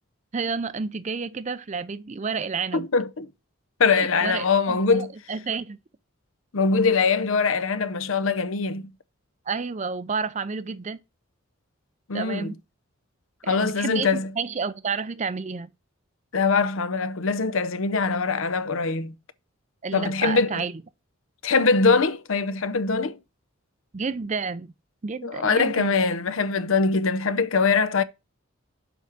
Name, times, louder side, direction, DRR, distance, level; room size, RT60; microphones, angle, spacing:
voice 1, 0.3-2.9 3.9-5.8 9.5-11.0 12.1-12.6 13.4-15.7 19.8-20.8 23.9-24.7 25.0-25.9, right 5 dB, 35° right, 0.4 m, -30 dB
voice 2, 2.7-3.3 3.8-5.1 6.5-8.9 12.1-12.5 13.5-14.3 16.3-19.1 19.9-20.6 21.4-23.2 25.2-28.0, left 4 dB, 70° left, 0.7 m, -22 dB
6.9 x 4.7 x 5.9 m
head